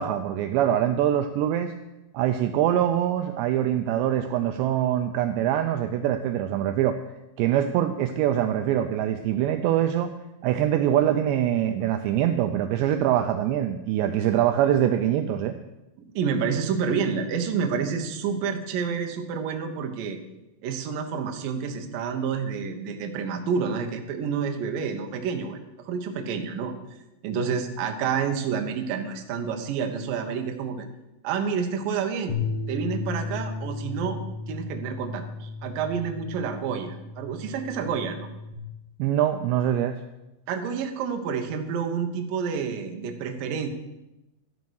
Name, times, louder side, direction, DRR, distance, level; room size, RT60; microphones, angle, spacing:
voice 1, 0.0-1.7 2.1-7.0 7.4-10.1 10.4-15.6 39.0-40.0, right 11 dB, 90° right, 8 dB, 2.5 m, -24 dB
voice 2, 16.1-20.2 20.6-26.7 27.2-30.9 31.2-32.4 32.7-34.2 34.5-38.3 40.5-43.7, right 6 dB, 70° right, 5 dB, 2.1 m, -29 dB
sound 1, 32.3-38.5, left 4 dB, 55° left, 1.2 m, -35 dB
13.0 x 9.5 x 6.4 m, 0.95 s
omnidirectional pair, 5.8 m